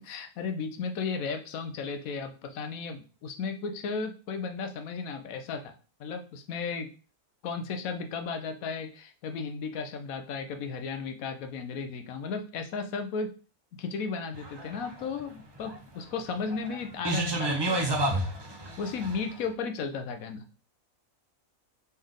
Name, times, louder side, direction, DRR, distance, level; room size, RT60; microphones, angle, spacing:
voice 1, 0.0-6.9 7.4-13.3 13.7-18.0 18.8-20.4, left 5 dB, 80° left, 7 dB, 1.1 m, -35 dB
sound 1, 14.3-19.4, right 1 dB, 30° right, 0.5 m, -31 dB
4.2 x 3.3 x 3.7 m, 0.36 s
omnidirectional pair, 1.4 m